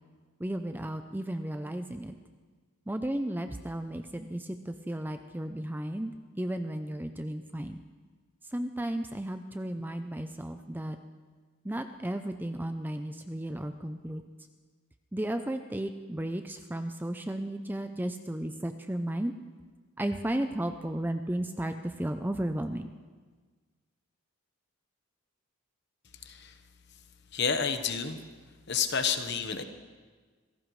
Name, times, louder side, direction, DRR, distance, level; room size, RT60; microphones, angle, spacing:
voice 1, 0.4-2.1 2.9-7.8 8.5-11.0 11.6-14.2 15.1-19.3 20.0-22.9, right 1 dB, 10° right, 7 dB, 0.4 m, -34 dB
voice 2, 26.2-26.6 27.3-28.2 28.7-29.6, left 6 dB, 50° left, 8 dB, 1.1 m, -30 dB
25.5 x 17.5 x 3.2 m, 1.5 s
head